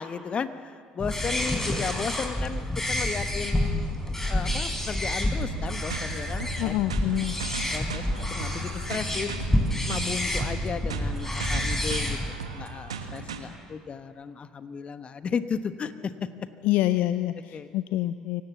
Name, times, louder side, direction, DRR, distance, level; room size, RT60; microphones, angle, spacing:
voice 1, 0.0-6.8 7.7-9.3 9.8-16.3 17.5-17.7, left 6 dB, 40° left, 11 dB, 1.3 m, -34 dB
sound 1, 1.0-12.3, left 1 dB, 15° left, 4.7 m, -29 dB
sound 2, 5.4-13.4, right 5 dB, 85° right, 1.5 m, -38 dB
voice 2, 6.6-7.3 16.6-18.4, left 15 dB, 65° left, 13 dB, 0.5 m, -26 dB
24.5 x 18.0 x 7.3 m, 2.1 s
hypercardioid pair, 55°, 3 cm